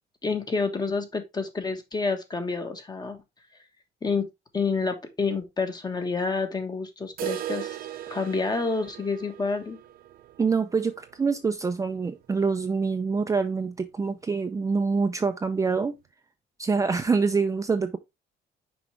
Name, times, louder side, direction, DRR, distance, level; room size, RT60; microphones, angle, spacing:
voice 1, 0.2-3.2 4.0-4.2 4.5-7.8 8.1-9.8, left 4 dB, 25° left, 1.4 m, -28 dB
sound 1, 7.2-13.0 13.3-13.4 13.7-13.8 14.3-14.4 15.3-15.4, right 12 dB, 60° right, 0.7 m, -39 dB
voice 2, 10.4-15.9 16.6-18.0, right 4 dB, 20° right, 0.5 m, -25 dB
6.0 x 4.8 x 3.3 m
cardioid pair, 110°, 17 cm